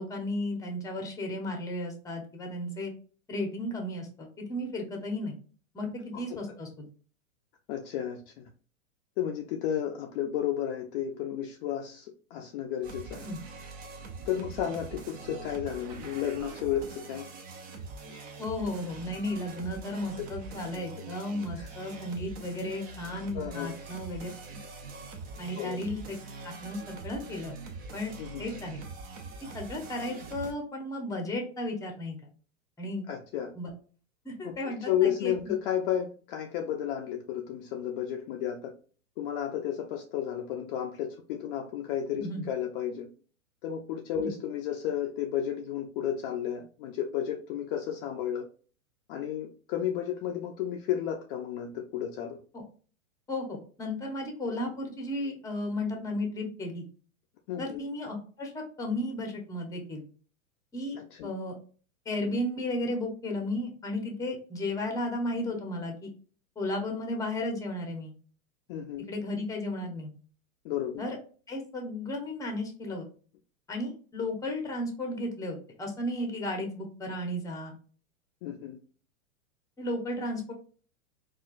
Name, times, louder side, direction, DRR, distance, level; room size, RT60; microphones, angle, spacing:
voice 1, 0.0-2.9 3.3-5.4 5.7-6.8 13.2-13.4 18.4-24.6 25.4-26.2 26.4-27.6 27.9-28.1 28.4-28.8 29.5-32.2 32.8-33.1 33.6-33.7 34.2-35.3 42.2-42.5 44.2-44.3 52.5-52.6 53.3-56.9 57.6-60.0 60.7-61.6 62.1-66.1 66.6-68.1 69.1-70.1 71.0-71.2 71.5-73.1 73.7-77.7 79.8-80.5, left 1 dB, 10° left, 3 dB, 0.8 m, -34 dB
voice 2, 7.7-8.4 9.2-13.2 14.3-17.3 20.2-20.3 21.6-21.7 23.3-23.7 25.6-25.8 28.2-28.4 33.1-33.5 34.4-38.7 39.2-43.1 43.6-48.5 49.1-52.4 57.5-57.8 61.0-61.3 68.7-69.1 70.6-71.0 78.4-78.8, left 10 dB, 40° left, 2 dB, 0.5 m, -32 dB
sound 1, 12.8-30.5, right 4 dB, 20° right, 0.5 m, -43 dB
4.3 x 2.3 x 2.4 m, 0.40 s
hypercardioid pair, 120°, 43 cm